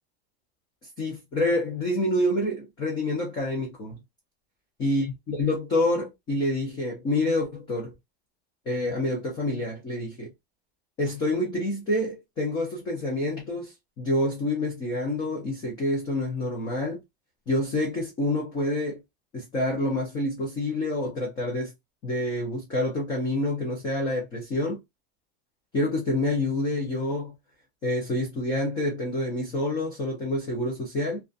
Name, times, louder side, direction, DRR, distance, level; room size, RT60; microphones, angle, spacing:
voice 1, 1.0-4.0 4.8-7.9 8.7-10.3 11.0-17.0 17.5-19.0 19.3-21.7 22.0-24.8 25.7-27.3 27.8-31.2, left 1 dB, 15° left, 0.3 m, -27 dB
2.4 x 2.2 x 2.4 m
supercardioid pair, 175°, 32 cm